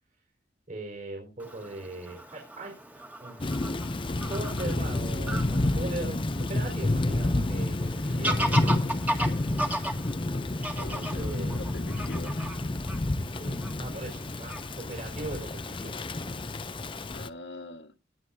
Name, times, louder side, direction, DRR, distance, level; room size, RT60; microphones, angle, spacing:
voice 1, 0.7-8.6 10.7-11.6 13.4-16.3, right 2 dB, 45° right, 4.9 m, -40 dB
Fowl / Bird vocalization bird call bird song, 1.4-17.1, right 1 dB, 10° right, 1.8 m, -37 dB
Thunder / Rain, 3.4-17.3, left 2 dB, 30° left, 0.6 m, -30 dB
voice 2, 10.3-11.2 11.6-12.5 17.1-17.9, left 2 dB, 70° left, 1.9 m, -44 dB
20.0 x 7.8 x 2.8 m
head